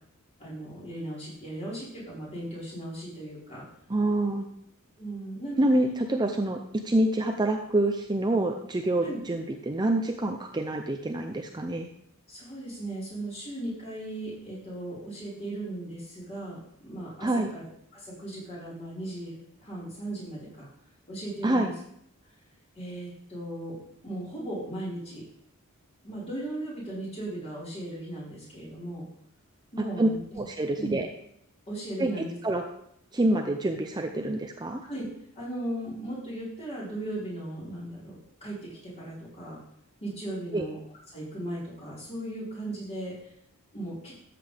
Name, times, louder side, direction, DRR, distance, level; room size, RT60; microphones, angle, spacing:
voice 1, 0.4-3.7 5.0-5.8 9.0-9.2 12.3-17.7 17.9-20.7 21.1-21.7 22.8-23.8 24.0-25.2 26.0-29.0 29.7-30.4 30.8-31.0 31.7-32.4 34.8-35.1 35.3-39.6 40.0-40.8 41.1-43.3 43.7-44.1, right 1 dB, 30° left, -7 dB, 4.7 m, -37 dB
voice 2, 3.9-4.5 5.6-11.9 17.2-17.5 21.4-21.7 30.0-30.1 30.4-31.1 32.0-32.1 32.4-32.6 33.1-34.8 40.5-40.6, right 1 dB, 20° right, 4 dB, 0.5 m, -26 dB
13.0 x 7.7 x 3.4 m, 0.72 s
head